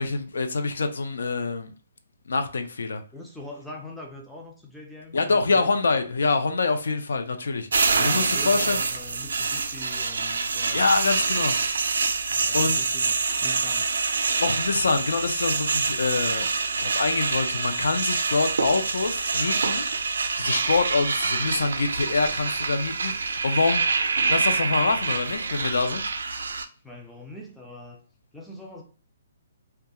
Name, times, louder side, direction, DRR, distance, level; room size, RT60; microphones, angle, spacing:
voice 1, 0.0-1.7 2.3-3.0 5.1-8.8 10.7-11.5 12.3-12.8 14.4-16.5 16.8-19.9 20.4-23.8 24.3-26.0, left 3 dB, 85° left, 0.4 m, -25 dB
voice 2, 3.1-5.7 7.8-11.0 12.3-13.9 26.8-28.0 28.3-28.8, left 1 dB, ahead, 0.3 m, -42 dB
sound 1, 7.7-26.7, right 4 dB, 80° right, 0.3 m, -26 dB
2.3 x 2.2 x 2.8 m
hypercardioid pair, 175°, 0 cm